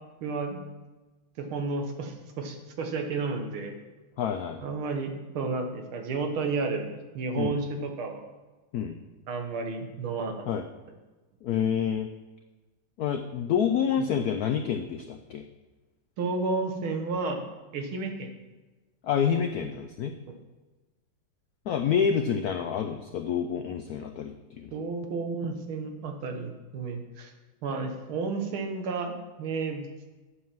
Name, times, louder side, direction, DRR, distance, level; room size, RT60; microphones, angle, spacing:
voice 1, 0.2-0.6 1.4-3.8 4.6-8.3 9.3-10.4 16.2-17.5 17.7-18.3 24.7-27.3 27.6-29.1 29.4-29.9, right 4 dB, 80° right, 4 dB, 2.0 m, -32 dB
voice 2, 4.2-4.6 7.4-7.6 8.7-9.0 10.5-10.6 11.4-12.1 13.0-15.4 19.0-20.1 21.7-24.7, left 7 dB, 90° left, 7 dB, 0.8 m, -28 dB
8.3 x 7.3 x 5.9 m, 1.2 s
omnidirectional pair, 2.3 m